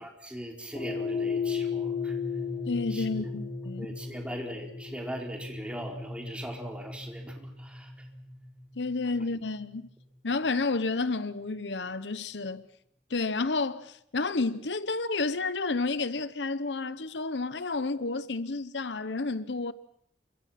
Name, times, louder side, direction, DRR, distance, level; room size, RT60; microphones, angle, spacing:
voice 1, 0.0-2.2 2.9-3.0 3.8-8.1, equal, 5° right, 4.5 m, -40 dB
sound 1, 0.7-9.2, left 5 dB, 35° left, 4.5 m, -35 dB
voice 2, 2.7-3.9 8.8-9.9 10.2-12.6 13.1-19.7, left 3 dB, 75° left, 0.9 m, -30 dB
29.0 x 25.0 x 5.9 m
head